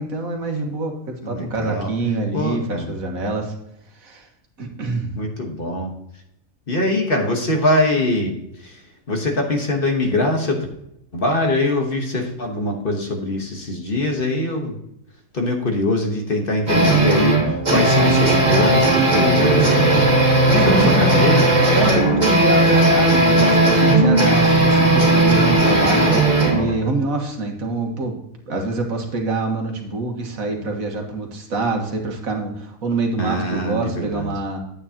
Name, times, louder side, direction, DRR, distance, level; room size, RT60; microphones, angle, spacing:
voice 1, 0.0-3.5 4.0-4.3 4.6-5.1 20.5-21.1 21.7-28.2 28.5-34.6, right 2 dB, 80° right, 2 dB, 1.9 m, -25 dB
voice 2, 1.2-1.9 2.3-2.9 5.1-5.9 6.7-10.7 11.1-14.8 15.3-20.1 20.7-21.5 33.2-34.3, left 1 dB, 40° left, 2 dB, 1.4 m, -23 dB
sound 1, 16.7-26.7, right 2 dB, 30° right, 2.4 m, -16 dB
9.9 x 8.4 x 2.8 m, 0.79 s
omnidirectional pair, 1.4 m